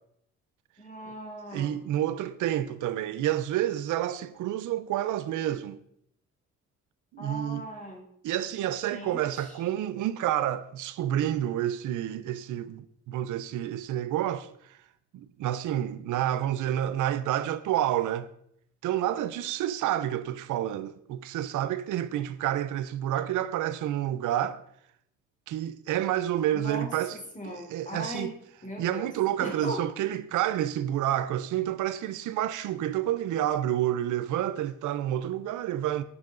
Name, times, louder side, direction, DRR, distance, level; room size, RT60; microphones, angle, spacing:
voice 1, 0.8-1.8 7.2-8.0 8.8-9.6 26.5-28.3 28.6-29.1 29.4-29.9, equal, 25° left, 3.8 m, -38 dB
voice 2, 1.5-5.8 7.1-7.7 8.2-14.8 15.1-18.3 18.8-24.6 25.5-27.2 27.4-28.3 28.8-36.0, right 12 dB, 85° right, 0.7 m, -29 dB
18.0 x 6.3 x 3.9 m
cardioid pair, 90°, 30 cm